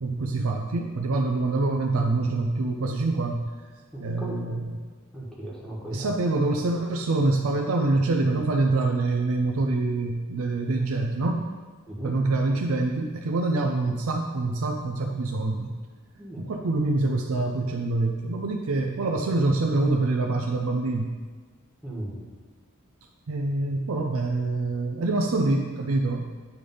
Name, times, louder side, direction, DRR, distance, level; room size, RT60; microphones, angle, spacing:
voice 1, 0.0-3.4 4.0-4.8 5.9-11.4 12.0-15.7 16.4-21.1 23.3-26.2, right 2 dB, 70° right, 3 dB, 0.5 m, -25 dB
voice 2, 3.9-4.4 5.1-6.1 11.9-12.1 16.2-16.5 21.8-22.2, right 1 dB, 5° left, -5 dB, 1.4 m, -36 dB
9.3 x 3.4 x 5.4 m, 1.4 s
head